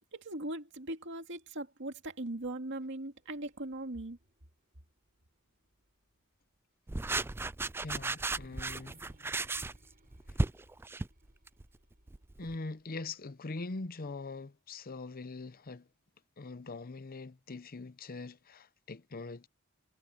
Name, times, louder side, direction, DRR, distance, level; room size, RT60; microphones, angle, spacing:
voice 1, 0.1-4.2, right 1 dB, 60° right, 2.3 m, -39 dB
sound 1, 3.2-6.1 6.6-6.7 8.1-13.1, right 1 dB, 45° right, 6.8 m, -64 dB
sound 2, 6.9-11.6 12.1-12.5, right 3 dB, 10° right, 0.3 m, -35 dB
voice 2, 7.8-9.0 10.3-10.4 12.4-15.9 16.4-19.5, left 3 dB, 45° left, 0.7 m, -42 dB
head